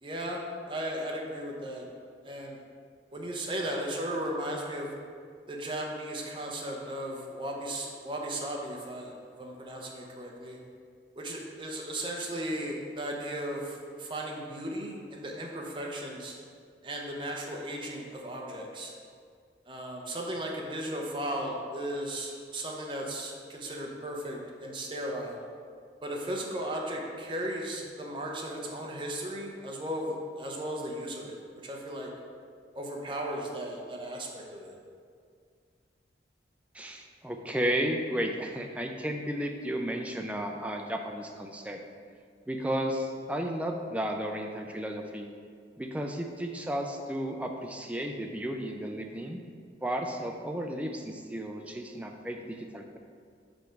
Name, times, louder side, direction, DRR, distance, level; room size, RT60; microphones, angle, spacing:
voice 1, 0.0-1.9 2.2-2.6 3.1-4.9 5.5-10.6 11.2-16.3 16.8-18.9 19.7-25.4 26.0-32.1 32.7-34.8, right 1 dB, 25° right, -1 dB, 0.7 m, -36 dB
voice 2, 36.7-41.8 42.5-45.3 45.8-49.4 49.8-53.0, equal, 10° right, 3 dB, 0.4 m, -33 dB
5.2 x 4.8 x 4.5 m, 2.1 s
head